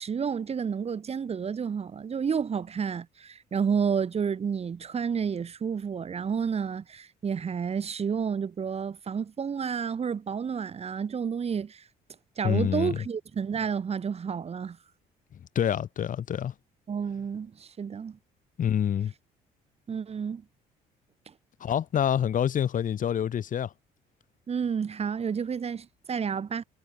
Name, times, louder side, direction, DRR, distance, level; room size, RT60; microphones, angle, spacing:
voice 1, 0.0-11.8 12.4-14.8 16.9-18.2 19.9-20.4 24.5-26.6, right 6 dB, 35° right, 6.2 m, -30 dB
voice 2, 12.4-13.0 15.6-16.5 18.6-19.1 21.6-23.7, left 9 dB, 50° left, 5.5 m, -27 dB
cardioid pair, 110°, 17 cm